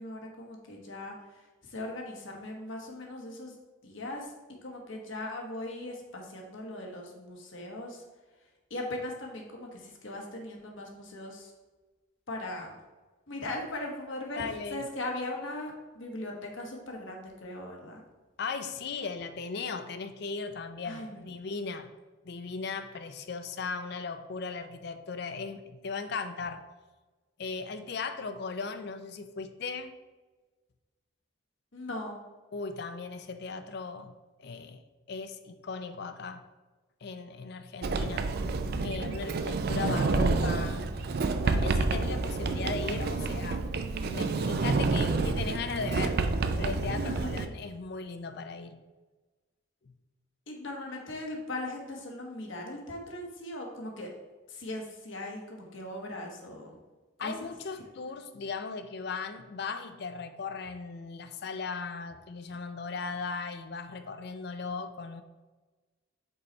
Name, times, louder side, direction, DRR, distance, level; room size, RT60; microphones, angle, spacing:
voice 1, 0.0-3.5 3.8-4.3 4.6-8.0 8.7-11.5 12.3-12.8 13.3-14.4 14.7-18.0 20.8-21.2 31.7-32.2 47.0-47.4 50.5-54.1 54.5-56.8 57.2-57.5, left 1 dB, 70° left, 1 dB, 1.2 m, -39 dB
voice 2, 14.4-14.9 18.4-21.9 22.2-26.6 27.4-29.9 32.5-34.1 34.4-34.8 35.1-36.4 37.0-38.3 38.8-41.1 41.4-43.6 44.0-48.8 49.8-49.9 57.2-65.2, left 4 dB, 55° left, 9 dB, 0.4 m, -37 dB
Sliding door, 37.8-47.5, right 3 dB, 50° right, 0.4 m, -29 dB
5.4 x 4.1 x 4.4 m, 1.2 s
head